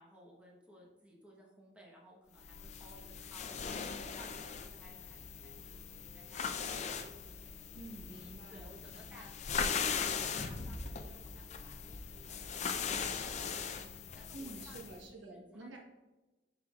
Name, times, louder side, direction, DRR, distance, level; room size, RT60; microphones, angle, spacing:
voice 1, 0.0-3.6 4.0-7.5 8.1-13.9 14.1-15.8, equal, 5° right, -3 dB, 1.1 m, -59 dB
sound 1, 2.4-15.0, left 6 dB, 35° left, 0.4 m, -40 dB
voice 2, 7.7-9.1 14.3-15.8, right 2 dB, 90° right, 0 dB, 1.2 m, -49 dB
7.5 x 6.1 x 2.4 m, 1.1 s
head